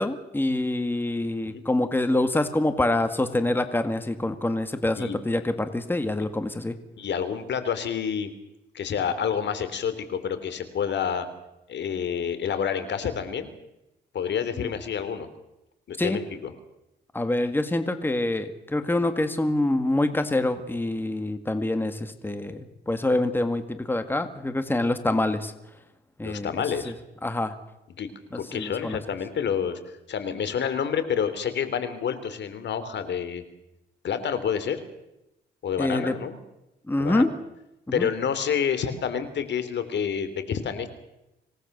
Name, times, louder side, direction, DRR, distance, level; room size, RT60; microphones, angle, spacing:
voice 1, 0.0-6.8 14.6-14.7 16.0-16.2 17.1-25.5 26.2-26.5 26.8-26.9 27.2-27.5 28.3-29.0 35.8-36.1 36.9-37.3 37.9-38.1, left 2 dB, 10° left, 9 dB, 1.9 m, -26 dB
voice 2, 7.0-8.3 8.7-11.3 11.7-13.5 14.1-15.3 15.9-16.5 26.2-26.9 28.0-28.1 28.3-29.8 30.1-33.4 34.0-34.8 35.6-36.4 37.0-37.3 37.9-40.9, left 7 dB, 60° left, 12 dB, 3.2 m, -28 dB
26.0 x 18.5 x 6.8 m, 0.90 s
cardioid pair, 90°, 20 cm